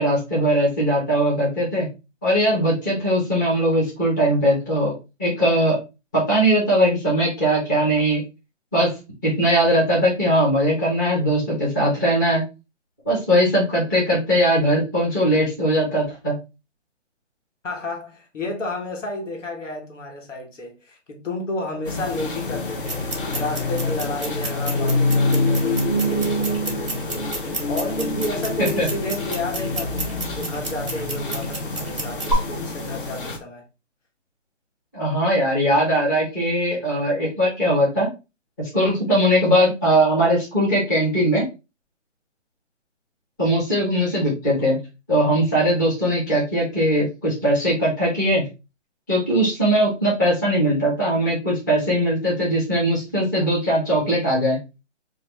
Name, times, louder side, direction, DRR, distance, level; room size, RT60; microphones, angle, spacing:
voice 1, 0.0-1.9 2.2-4.9 5.2-5.8 6.1-8.2 8.7-8.9 9.2-12.4 13.0-16.4 28.6-28.9 34.9-38.1 38.6-41.4 43.4-44.8 45.1-48.5 49.1-54.6, equal, 15° left, 0.8 m, -20 dB
voice 2, 17.6-33.7, left 1 dB, 80° left, 1.3 m, -32 dB
sound 1, 21.8-33.4, left 2 dB, 45° left, 0.5 m, -26 dB
sound 2, 22.8-32.3, right 2 dB, 25° right, 0.6 m, -33 dB
3.2 x 2.4 x 3.1 m
hypercardioid pair, 170°, 37 cm